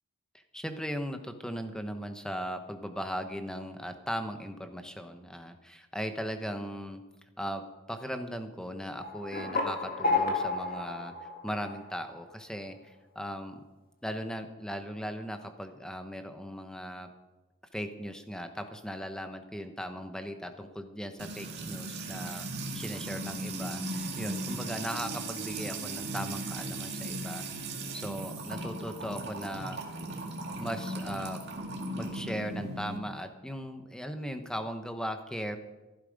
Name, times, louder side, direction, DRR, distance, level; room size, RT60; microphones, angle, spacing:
voice 1, 0.5-7.0 7.4-7.6 7.9-13.6 14.0-17.1 17.7-22.5 22.7-27.4 27.9-29.8 30.6-31.4 31.9-35.6, equal, 5° left, 7 dB, 0.9 m, -38 dB
sound 1, 9.0-12.3, left 3 dB, 40° left, 2.2 m, -32 dB
Music / Water tap faucet / Trickle dribble, 21.2-33.0, right 2 dB, 50° right, 2.1 m, -37 dB
14.5 x 11.5 x 5.2 m, 1.1 s
head